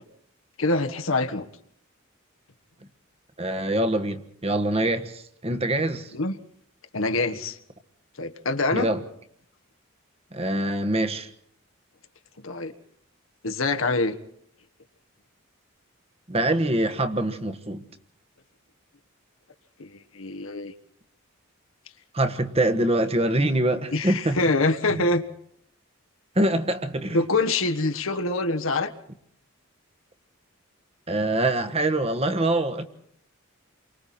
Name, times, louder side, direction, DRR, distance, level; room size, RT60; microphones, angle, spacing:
voice 1, 0.6-1.5 6.1-6.3 6.9-7.6 8.2-8.9 12.4-12.7 13.4-14.2 19.8-20.7 23.9-25.2 27.1-28.9, left 2 dB, 75° left, 1.4 m, -25 dB
voice 2, 3.4-6.1 8.7-9.0 10.3-11.3 16.3-17.8 22.1-24.4 24.9-25.1 26.3-27.2 31.1-32.9, right 1 dB, 30° right, 1.4 m, -24 dB
29.0 x 24.0 x 4.4 m
head